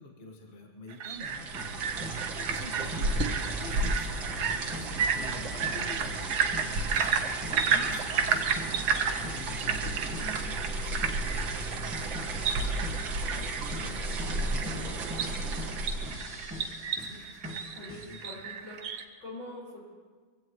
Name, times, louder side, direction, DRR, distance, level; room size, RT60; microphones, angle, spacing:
voice 1, 0.0-6.2 6.8-12.8 13.3-14.8 16.9-17.4 18.0-18.4, left 3 dB, 30° left, 0 dB, 1.7 m, -47 dB
sound 1, 0.9-19.0, right 6 dB, 60° right, 1.3 m, -33 dB
sound 2, 1.2-9.9 10.1-12.6 12.8-18.2, left 1 dB, 5° right, 1.9 m, -44 dB
sound 3, 1.2-16.6, right 2 dB, 85° right, 2.2 m, -34 dB
voice 2, 14.4-15.9 17.7-19.9, left 1 dB, 85° left, -6 dB, 6.6 m, -46 dB
23.5 x 16.0 x 3.1 m, 1.5 s
omnidirectional pair, 2.1 m